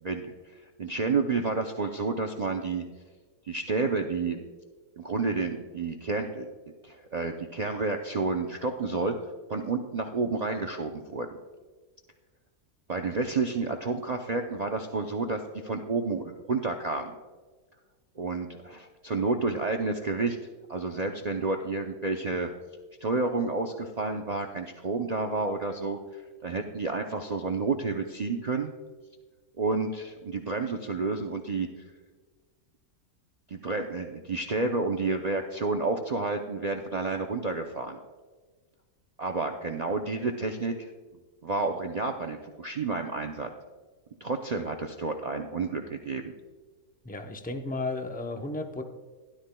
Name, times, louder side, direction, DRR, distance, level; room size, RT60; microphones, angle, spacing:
voice 1, 0.0-2.8 3.5-4.4 5.0-6.5 6.8-11.3 12.9-17.2 18.2-22.5 23.0-28.7 29.6-31.7 33.5-38.0 39.2-40.9 41.4-43.5 44.2-46.3, right 3 dB, 60° right, 4 dB, 0.4 m, -30 dB
voice 2, 47.0-48.8, left 2 dB, 10° left, 4 dB, 0.4 m, -33 dB
16.0 x 11.5 x 2.2 m, 1.4 s
omnidirectional pair, 1.5 m